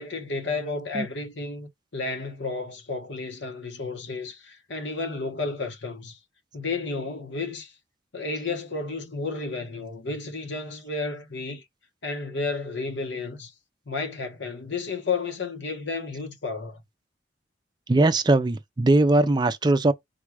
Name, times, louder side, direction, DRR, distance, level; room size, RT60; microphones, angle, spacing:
voice 1, 0.0-6.2 6.5-7.7 8.1-11.6 12.0-13.5 13.9-16.8, left 3 dB, 75° left, 1.0 m, -32 dB
voice 2, 17.9-19.9, right 2 dB, 25° right, 0.4 m, -20 dB
4.1 x 2.4 x 4.6 m
head